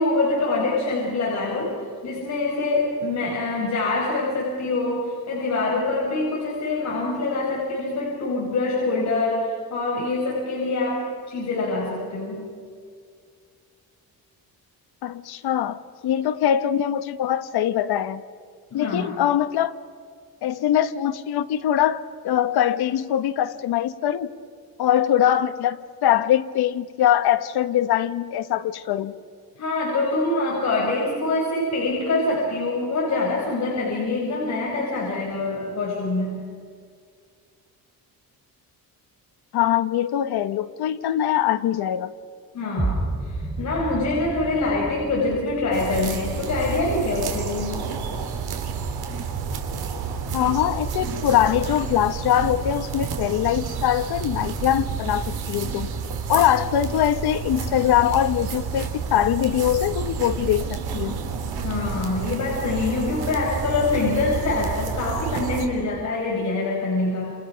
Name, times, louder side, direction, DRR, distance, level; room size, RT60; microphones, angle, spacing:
voice 1, 0.0-1.8 2.0-12.5 18.7-19.1 29.6-36.4 42.5-47.9 61.6-67.3, left 2 dB, 45° left, -3 dB, 5.4 m, -25 dB
voice 2, 15.0-18.2 18.7-19.8 20.4-24.3 24.8-29.1 39.5-42.1 50.3-55.9 56.3-61.2, left 11 dB, 85° left, 10 dB, 1.3 m, -22 dB
sound 1, 42.8-48.8, right 2 dB, 20° right, 2.6 m, -33 dB
sound 2, 45.7-65.7, right 6 dB, 80° right, 3.6 m, -30 dB
29.5 x 28.5 x 5.9 m, 2.1 s
cardioid pair, 170°, 38 cm